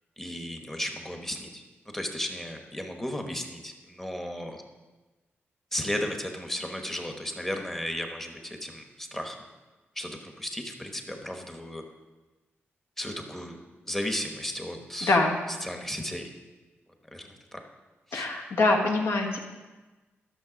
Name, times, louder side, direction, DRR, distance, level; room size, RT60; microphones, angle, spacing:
voice 1, 0.2-1.6 1.9-4.6 5.7-9.4 10.0-11.8 13.0-13.6 13.9-15.2 15.6-16.2 17.1-17.6 18.1-18.3, equal, 5° left, 3 dB, 1.1 m, -34 dB
voice 2, 15.0-15.4 18.1-19.4, left 2 dB, 65° left, 2 dB, 1.5 m, -24 dB
12.5 x 6.7 x 5.1 m, 1.2 s
wide cardioid pair, 150°, 4 cm